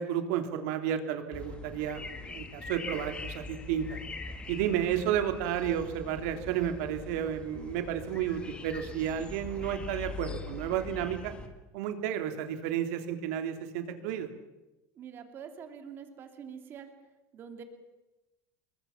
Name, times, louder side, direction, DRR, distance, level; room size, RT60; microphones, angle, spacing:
voice 1, 0.0-4.0 4.5-11.3 11.7-14.3, right 10 dB, 90° right, 6 dB, 3.1 m, -32 dB
sound 1, 1.3-11.5, left 4 dB, 15° left, 1.8 m, -42 dB
voice 2, 14.9-16.9 17.3-17.6, right 7 dB, 30° right, 6 dB, 2.9 m, -45 dB
27.0 x 22.0 x 7.3 m, 1.0 s
cardioid pair, 180°, 7 cm